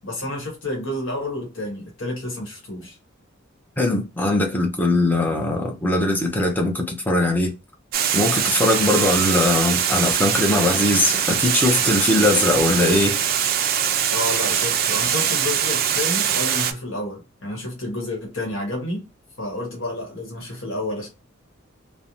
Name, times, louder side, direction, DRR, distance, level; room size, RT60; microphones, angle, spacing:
voice 1, 0.0-3.0 14.1-19.0 19.4-21.1, left 1 dB, 65° left, 1.0 m, -30 dB
voice 2, 3.8-7.6 8.1-13.2, left 2 dB, 10° left, 0.5 m, -20 dB
Water, 7.9-16.7, right 9 dB, 45° right, 0.3 m, -22 dB
2.5 x 2.0 x 2.9 m
head